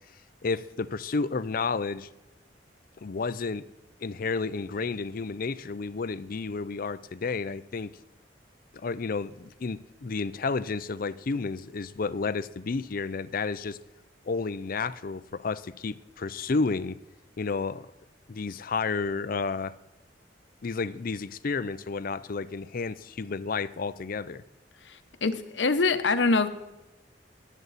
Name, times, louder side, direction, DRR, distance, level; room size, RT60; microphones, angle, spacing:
voice 1, 0.4-2.1 3.0-3.6 4.0-7.9 8.7-13.8 14.2-17.0 17.4-17.9 18.3-19.7 20.6-24.4, left 4 dB, 50° left, 14 dB, 0.5 m, -31 dB
voice 2, 24.8-26.5, left 3 dB, 80° left, 10 dB, 0.9 m, -25 dB
22.0 x 8.2 x 4.1 m, 1.0 s
head